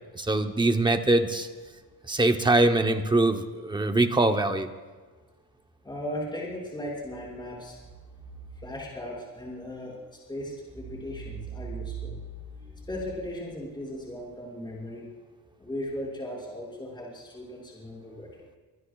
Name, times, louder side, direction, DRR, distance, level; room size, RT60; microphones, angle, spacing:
voice 1, 0.1-1.5 2.1-4.7, right 2 dB, 10° right, 6 dB, 0.8 m, -23 dB
voice 2, 5.8-7.8 8.5-12.2 12.5-15.1 15.6-18.4, equal, 10° left, -5 dB, 5.7 m, -37 dB
24.5 x 20.0 x 2.3 m, 1.4 s
cardioid pair, 175°, 39 cm